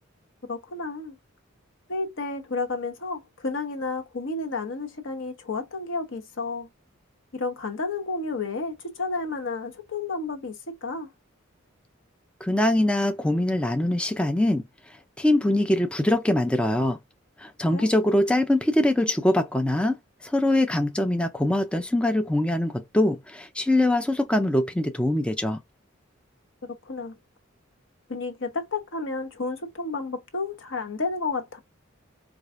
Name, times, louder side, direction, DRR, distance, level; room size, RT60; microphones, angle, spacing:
voice 1, 0.5-1.2 1.9-6.7 7.3-11.1 17.7-17.9 26.8-27.1 28.1-31.6, left 3 dB, 65° left, 0.9 m, -31 dB
voice 2, 12.4-17.0 17.4-25.6, left 1 dB, 5° left, 0.3 m, -23 dB
4.7 x 2.4 x 2.4 m
head